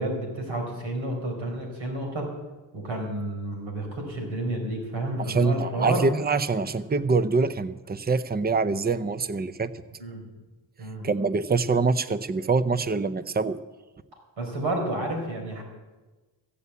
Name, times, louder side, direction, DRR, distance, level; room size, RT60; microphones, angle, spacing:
voice 1, 0.0-2.3 2.7-6.0 10.0-10.2 10.8-11.1 14.4-15.6, right 1 dB, 75° right, 2 dB, 4.8 m, -30 dB
voice 2, 5.2-9.7 11.0-13.6, right 4 dB, 20° right, 15 dB, 0.7 m, -25 dB
15.0 x 8.5 x 8.3 m, 1.2 s
cardioid pair, 75°, 46 cm